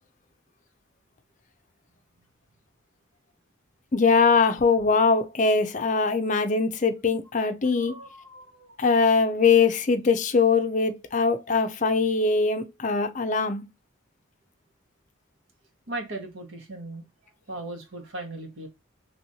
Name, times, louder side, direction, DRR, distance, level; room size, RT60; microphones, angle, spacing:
voice 1, 3.9-7.9 8.8-13.6, left 4 dB, 35° left, 0.5 m, -22 dB
voice 2, 7.6-8.8 15.9-18.7, right 2 dB, 70° right, 1.2 m, -38 dB
3.1 x 2.9 x 2.6 m
head